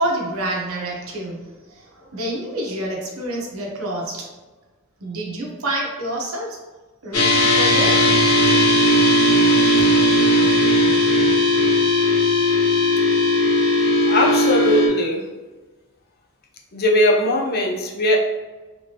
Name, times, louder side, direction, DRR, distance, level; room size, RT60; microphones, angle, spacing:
voice 1, 0.0-1.4 1.7-4.2 5.0-6.6 7.0-8.0, right 1 dB, 85° right, -2 dB, 0.9 m, -27 dB
sound 1, 7.1-14.9, left 1 dB, 85° left, 1.2 m, -17 dB
voice 2, 14.1-15.2 16.7-18.2, left 1 dB, 50° left, 0 dB, 0.6 m, -19 dB
3.4 x 3.0 x 2.8 m, 1.3 s
head